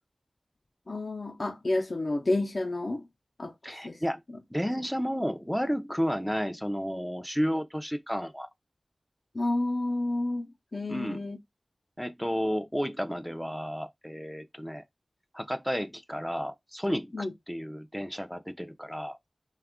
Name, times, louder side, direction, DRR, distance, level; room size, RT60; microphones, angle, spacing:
voice 1, 0.9-3.1 3.4-4.0 9.3-11.4 17.1-17.3, left 2 dB, 60° left, 0.6 m, -30 dB
voice 2, 3.6-4.2 4.5-8.5 10.9-11.2 12.0-14.8 15.3-19.2, equal, 5° left, 0.4 m, -32 dB
2.5 x 2.4 x 3.5 m
wide cardioid pair, 55°, 0 cm